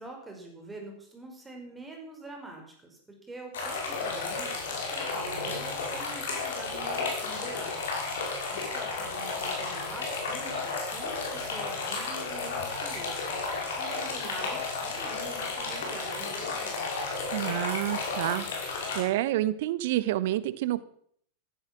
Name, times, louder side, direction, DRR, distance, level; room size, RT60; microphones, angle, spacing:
voice 1, 0.0-7.8 8.5-13.5 13.7-16.8, right 2 dB, 10° right, 2 dB, 5.8 m, -45 dB
sound 1, 3.5-19.0, left 4 dB, 60° left, 5.5 m, -33 dB
voice 2, 17.3-20.8, right 14 dB, 50° right, 18 dB, 0.9 m, -29 dB
15.5 x 15.0 x 6.0 m, 0.64 s
figure-of-eight pair, 90°, 0 cm